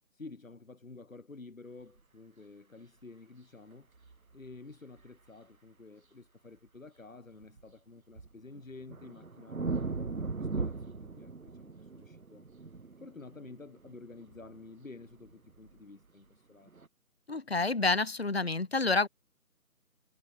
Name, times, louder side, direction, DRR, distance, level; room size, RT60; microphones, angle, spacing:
voice 1, 0.1-3.9 4.3-12.5 13.0-16.7, left 3 dB, 60° left, 6.5 m, -51 dB
sound 1, 4.0-4.5 5.0-5.1 7.3-7.6 8.2-14.7 15.0-15.8 16.7-16.9, right 4 dB, 65° right, 2.1 m, -39 dB
voice 2, 17.3-19.1, left 3 dB, 45° left, 0.8 m, -28 dB
figure-of-eight pair, 170°, 46 cm